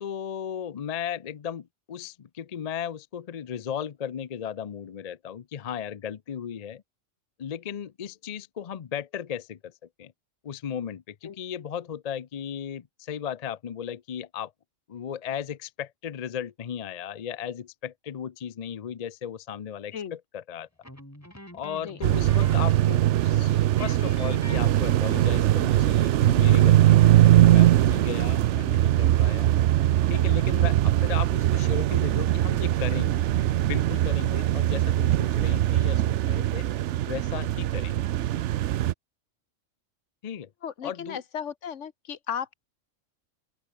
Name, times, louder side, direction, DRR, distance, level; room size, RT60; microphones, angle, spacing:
voice 1, 0.0-6.8 7.4-9.7 10.0-10.1 10.4-14.5 14.9-20.7 21.5-27.2 27.5-29.5 30.1-33.2 33.6-36.7 37.1-38.0 40.2-40.5 40.8-41.2, left 8 dB, 45° left, 0.5 m, -36 dB
sound 1, 20.8-23.0 23.3-23.4 23.8-25.4, equal, 10° left, 6.5 m, -46 dB
sound 2, 22.0-38.9, right 13 dB, 70° right, 0.8 m, -21 dB
voice 2, 40.6-42.5, left 8 dB, 65° left, 1.4 m, -35 dB
open air
omnidirectional pair, 1.4 m